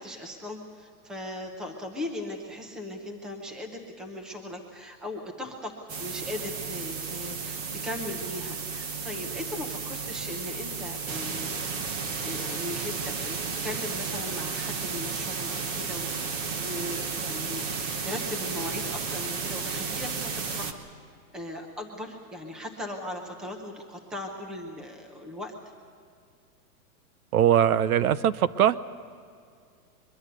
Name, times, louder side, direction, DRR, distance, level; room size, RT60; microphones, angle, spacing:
voice 1, 0.0-5.7 6.0-11.6 12.2-13.4 13.6-20.9 21.3-25.5, left 1 dB, ahead, 3 dB, 0.7 m, -38 dB
sound 1, 5.9-20.7, right 5 dB, 25° right, 1.1 m, -33 dB
voice 2, 27.3-28.8, right 10 dB, 70° right, 16 dB, 1.0 m, -21 dB
23.0 x 22.5 x 6.7 m, 2.3 s
supercardioid pair, 175°, 45 cm